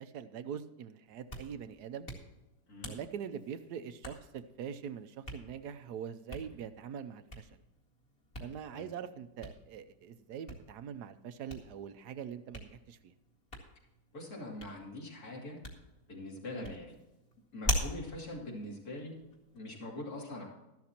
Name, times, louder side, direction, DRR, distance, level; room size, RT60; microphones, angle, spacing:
voice 1, 0.0-2.1 2.8-7.6 8.4-13.1 16.5-16.7, right 8 dB, 70° right, 11 dB, 1.1 m, -43 dB
Hands, 1.1-19.6, equal, 30° left, 2.1 m, -44 dB
voice 2, 14.1-15.6 16.1-16.9 17.5-19.1 19.5-20.4, left 1 dB, 55° left, -2 dB, 3.2 m, -43 dB
13.5 x 12.0 x 2.9 m, 1.0 s
omnidirectional pair, 2.0 m